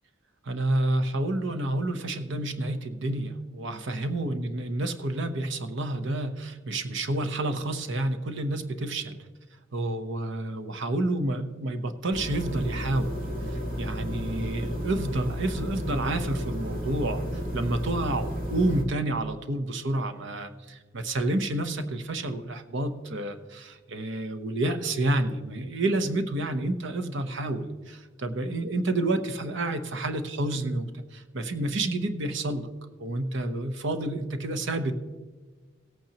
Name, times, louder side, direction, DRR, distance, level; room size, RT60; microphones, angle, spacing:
voice 1, 0.4-9.3 9.7-13.2 13.5-32.7 33.0-34.9, right 2 dB, 65° right, 9 dB, 0.8 m, -29 dB
sound 1, 12.1-18.8, equal, 45° right, 2.0 m, -32 dB
17.5 x 8.7 x 2.9 m, 1.3 s
head